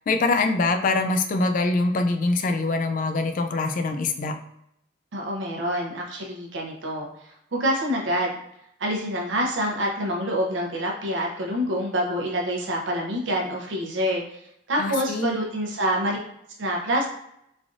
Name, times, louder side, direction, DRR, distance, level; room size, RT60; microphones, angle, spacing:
voice 1, 0.1-4.3 14.8-15.4, left 3 dB, 45° left, 6 dB, 0.3 m, -24 dB
voice 2, 5.1-7.1 7.5-8.3 8.8-14.2 14.7-16.2 16.6-17.1, equal, 75° right, -1 dB, 0.6 m, -26 dB
3.2 x 2.4 x 2.5 m, 0.77 s
head